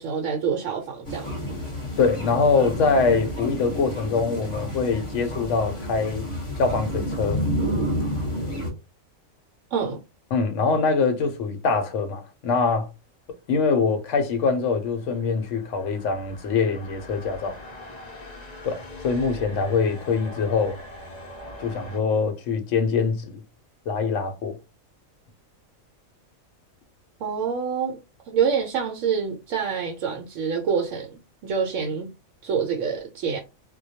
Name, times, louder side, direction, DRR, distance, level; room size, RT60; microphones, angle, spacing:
voice 1, 0.0-1.4 9.7-10.0 27.2-28.0 28.3-32.1 32.4-33.4, right 6 dB, 75° right, 0.9 m, -26 dB
sound 1, 1.0-8.7, equal, 25° left, 0.9 m, -30 dB
voice 2, 2.0-6.3 6.6-7.4 10.3-12.9 13.5-17.6 18.6-20.8 21.6-23.4 23.9-24.6, left 4 dB, 70° left, 0.9 m, -23 dB
sound 2, 14.3-22.0, left 1 dB, 45° left, 0.6 m, -42 dB
2.2 x 2.2 x 2.7 m
omnidirectional pair, 1.4 m